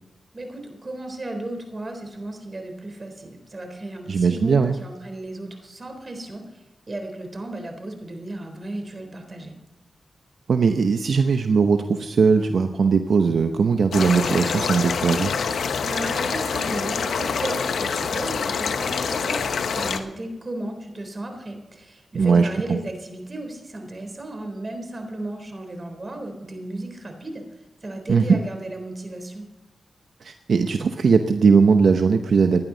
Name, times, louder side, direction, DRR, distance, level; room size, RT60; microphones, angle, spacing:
voice 1, 0.3-9.5 15.8-27.4 27.8-29.4, right 1 dB, 40° right, 5 dB, 3.8 m, -34 dB
voice 2, 4.1-4.8 10.5-15.3 22.1-22.5 28.1-28.4 30.2-32.7, right 5 dB, 75° right, 6 dB, 0.8 m, -19 dB
sound 1, 13.9-20.0, left 5 dB, 90° left, 1.0 m, -26 dB
16.5 x 11.0 x 4.0 m, 1.0 s
cardioid pair, 60°, 0 cm